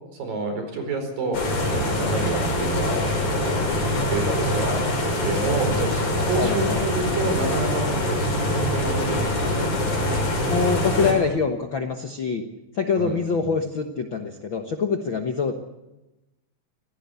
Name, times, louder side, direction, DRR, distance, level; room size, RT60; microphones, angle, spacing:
voice 1, 0.2-3.5 4.1-4.8 5.2-10.2 12.9-13.5, right 3 dB, 75° right, 6 dB, 6.4 m, -29 dB
sound 1, 1.3-11.1, left 1 dB, 80° left, 7.5 m, -24 dB
voice 2, 6.4-6.8 10.5-12.4 12.8-15.5, left 5 dB, 55° left, 5 dB, 1.3 m, -25 dB
24.5 x 17.5 x 8.3 m, 1.0 s
omnidirectional pair, 4.0 m